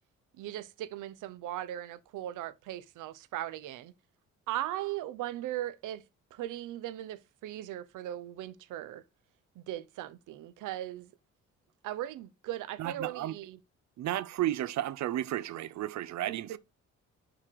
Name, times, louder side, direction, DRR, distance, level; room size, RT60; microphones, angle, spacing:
voice 1, 0.4-3.9 4.5-6.0 6.3-9.0 9.6-11.1 11.8-13.6 16.3-16.6, right 13 dB, 90° right, 0.8 m, -38 dB
voice 2, 12.8-13.3 14.0-16.6, right 13 dB, 65° right, 0.6 m, -33 dB
6.5 x 6.2 x 4.6 m
cardioid pair, 90°, 30 cm